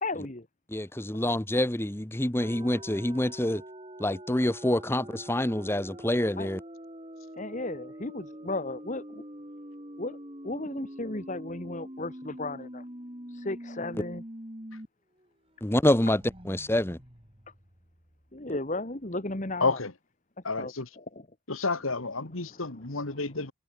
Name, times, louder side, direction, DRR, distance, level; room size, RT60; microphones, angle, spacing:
voice 1, 0.0-0.5 6.4-6.5 7.4-9.2 10.0-10.2 10.4-12.8 13.3-14.2 18.3-19.8 20.6-21.3 22.5-22.6, left 2 dB, 35° left, 1.8 m, -35 dB
voice 2, 0.7-3.6 4.0-6.6 15.6-17.0, left 1 dB, 10° left, 0.9 m, -27 dB
sound 1, 2.4-14.9 15.2-15.3 15.7-18.4, right 1 dB, 25° right, 3.8 m, -45 dB
voice 3, 19.6-19.9 20.4-20.9 21.5-23.5, left 3 dB, 75° left, 2.1 m, -30 dB
head